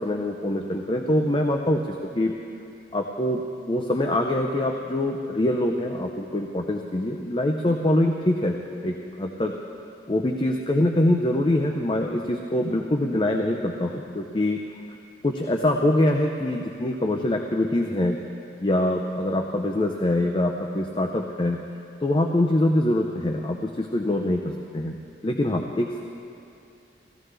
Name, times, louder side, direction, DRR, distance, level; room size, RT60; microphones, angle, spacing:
voice 1, 0.0-2.3 2.9-3.4 3.7-9.5 10.1-14.6 15.2-18.2 18.6-21.6 22.0-24.9 25.2-26.0, left 1 dB, 25° left, 2 dB, 0.5 m, -24 dB
18.0 x 14.5 x 3.3 m, 2.6 s
head